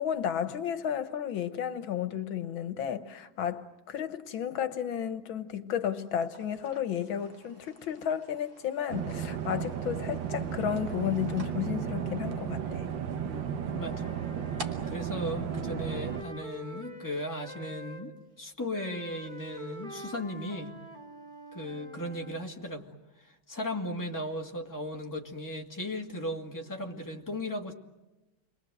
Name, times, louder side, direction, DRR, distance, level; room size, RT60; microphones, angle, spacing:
voice 1, 0.0-12.9, left 9 dB, 80° left, 1.9 m, -33 dB
sound 1, 6.1-16.5, right 2 dB, 50° right, 3.0 m, -52 dB
sound 2, 8.9-16.2, right 8 dB, 70° right, 1.8 m, -34 dB
voice 2, 13.2-14.1 14.9-18.1 18.4-20.8 21.5-22.9 23.3-27.7, left 1 dB, 10° left, 2.1 m, -36 dB
Wind instrument woodwind instrument, 13.6-18.0 18.7-22.4, equal, 25° right, 3.1 m, -46 dB
29.5 x 23.0 x 7.8 m
omnidirectional pair, 2.1 m